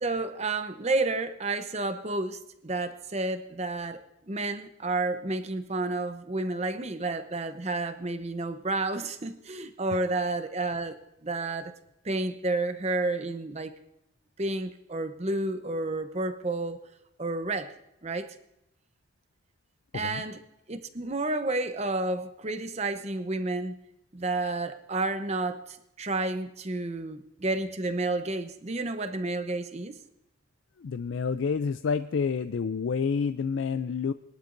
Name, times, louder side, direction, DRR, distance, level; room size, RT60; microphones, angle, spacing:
voice 1, 0.0-4.0 4.3-11.0 11.2-11.7 12.0-13.7 14.4-16.8 17.2-17.7 18.0-18.4 19.9-20.4 20.7-23.8 24.1-30.0, right 2 dB, 30° right, 9 dB, 0.8 m, -30 dB
voice 2, 30.8-34.1, left 5 dB, 65° left, 11 dB, 0.4 m, -29 dB
21.0 x 12.0 x 2.6 m, 0.84 s
head